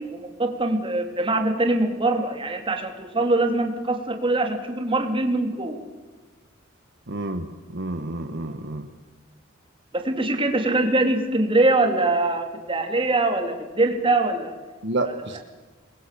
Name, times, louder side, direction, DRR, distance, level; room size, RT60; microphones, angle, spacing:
voice 1, 0.1-5.8 9.9-14.5, right 2 dB, 25° right, 4 dB, 3.4 m, -23 dB
voice 2, 7.1-8.9 14.8-15.4, right 2 dB, 60° right, 6 dB, 1.5 m, -29 dB
28.5 x 21.5 x 7.0 m, 1.3 s
head